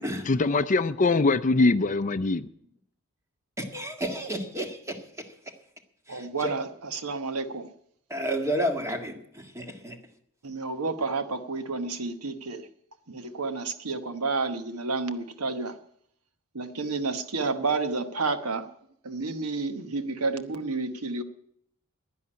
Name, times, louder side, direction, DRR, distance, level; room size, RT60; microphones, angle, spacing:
voice 1, 0.3-2.5, left 3 dB, 35° left, 0.5 m, -22 dB
voice 2, 3.6-5.3 6.1-6.5 8.1-10.0, equal, 15° right, 1.7 m, -31 dB
voice 3, 6.1-7.7 10.4-12.7 13.1-15.8 16.5-18.7 19.0-21.2, right 3 dB, 80° right, 1.1 m, -30 dB
11.0 x 10.5 x 9.9 m
head